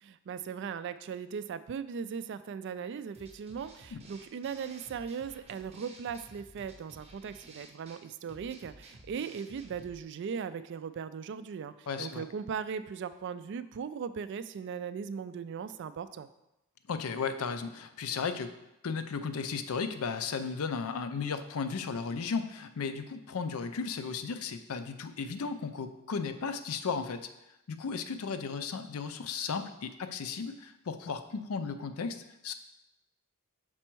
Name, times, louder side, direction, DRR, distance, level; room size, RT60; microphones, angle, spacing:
voice 1, 0.0-16.3, right 6 dB, 55° right, 13 dB, 0.3 m, -38 dB
sound 1, 3.1-10.0, right 2 dB, 30° right, 0.7 m, -54 dB
voice 2, 11.9-12.3 16.9-18.5 18.8-27.3 27.7-32.5, left 5 dB, 75° left, 9 dB, 0.5 m, -35 dB
6.0 x 4.4 x 4.5 m, 0.90 s
head